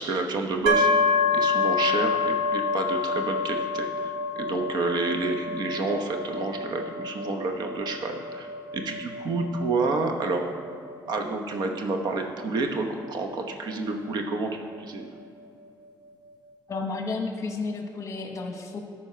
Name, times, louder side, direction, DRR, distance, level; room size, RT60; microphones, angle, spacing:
voice 1, 0.0-8.5 8.7-10.5 11.1-14.5 14.8-15.1, right 3 dB, 60° right, 4 dB, 1.0 m, -29 dB
sound 1, 0.7-14.3, left 3 dB, 85° right, 1.2 m, -28 dB
voice 2, 16.7-18.8, left 3 dB, 40° left, 3 dB, 1.1 m, -32 dB
13.0 x 4.6 x 5.6 m, 2.4 s
cardioid pair, 140°, 8 cm